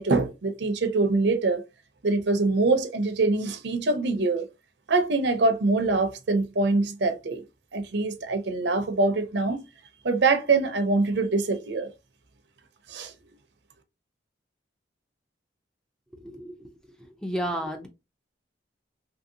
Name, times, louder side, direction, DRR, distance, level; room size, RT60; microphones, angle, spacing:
voice 1, 0.0-1.6 2.0-4.5 4.9-7.4 7.7-9.6 10.0-11.9 12.9-13.1, right 3 dB, 70° right, 0.6 m, -24 dB
voice 2, 16.2-16.6 17.2-17.9, equal, 5° left, 0.4 m, -31 dB
3.0 x 2.7 x 2.6 m
head